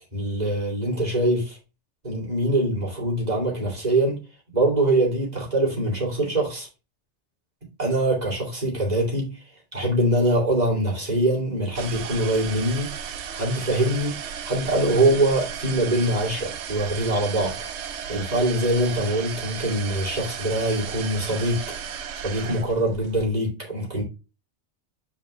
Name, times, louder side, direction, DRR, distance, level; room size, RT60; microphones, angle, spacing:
voice 1, 0.1-1.6 2.0-4.2 4.5-6.7 7.8-9.4 9.7-12.9 13.3-21.6 22.2-24.0, right 1 dB, 35° right, 2.8 m, -23 dB
sound 1, 11.7-23.3, right 8 dB, 70° right, 1.0 m, -35 dB
6.1 x 5.0 x 3.2 m
omnidirectional pair, 1.2 m